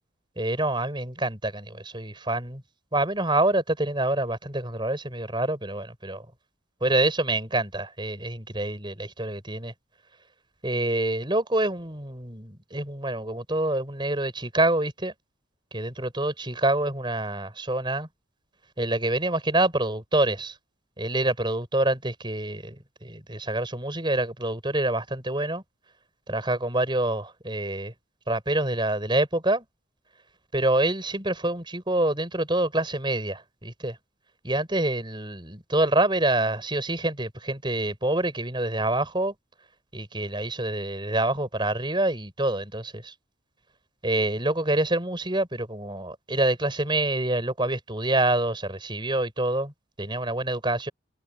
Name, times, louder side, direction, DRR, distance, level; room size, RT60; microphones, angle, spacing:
voice 1, 0.4-2.6 2.9-6.3 6.8-9.7 10.6-15.1 15.7-18.1 18.8-20.6 21.0-25.6 26.3-27.9 28.3-29.6 30.5-34.0 34.4-39.3 39.9-43.1 44.0-49.7 50.0-50.9, right 1 dB, 25° right, 6.3 m, -26 dB
head